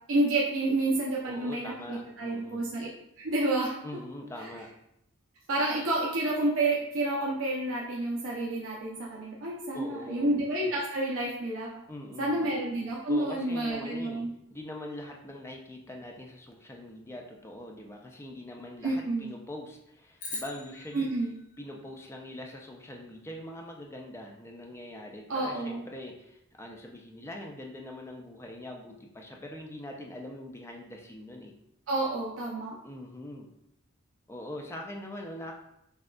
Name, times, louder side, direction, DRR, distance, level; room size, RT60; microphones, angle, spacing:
voice 1, 0.1-2.9 3.2-3.8 5.5-11.7 12.2-14.3 18.8-19.3 20.9-21.3 25.3-25.8 31.9-32.7, right 2 dB, 65° right, -4 dB, 0.6 m, -29 dB
voice 2, 1.3-2.7 3.8-4.7 9.7-10.4 11.9-12.5 13.1-21.1 21.6-31.5 32.8-33.5 34.3-35.5, left 1 dB, 10° left, 1 dB, 0.4 m, -42 dB
sound 1, 20.2-22.6, left 2 dB, 35° left, 0.8 m, -43 dB
6.2 x 2.3 x 2.2 m, 0.80 s
head